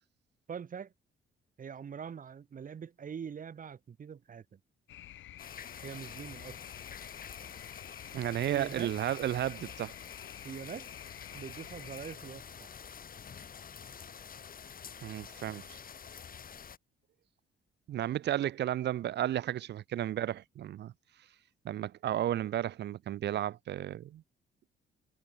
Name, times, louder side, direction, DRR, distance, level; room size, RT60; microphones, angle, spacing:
voice 1, 0.5-0.9 1.6-4.6 5.8-6.6 8.5-8.9 10.4-10.9 11.3-12.7, right 7 dB, 45° right, 1.4 m, -43 dB
sound 1, 4.9-12.2, left 12 dB, 75° left, 1.8 m, -50 dB
sound 2, 5.4-16.8, left 7 dB, 45° left, 2.3 m, -48 dB
voice 2, 8.1-9.9 15.0-15.8 17.9-20.9 21.6-24.2, right 12 dB, 60° right, 0.6 m, -33 dB
cardioid pair, 90°, 20 cm